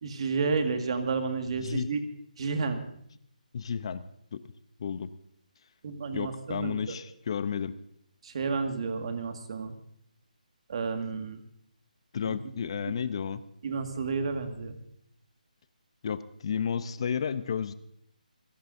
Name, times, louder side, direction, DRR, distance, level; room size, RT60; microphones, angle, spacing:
voice 1, 0.0-2.0 2.4-2.8 5.8-7.0 8.2-9.7 10.7-11.4 12.3-12.4 13.6-14.8, right 4 dB, 40° right, 6 dB, 1.9 m, -31 dB
voice 2, 3.5-4.0 4.3-4.4 4.8-5.1 6.1-7.8 12.1-13.4 16.0-17.7, left 7 dB, 40° left, 14 dB, 0.7 m, -32 dB
27.5 x 17.0 x 2.7 m, 0.70 s
figure-of-eight pair, 165°, 5 cm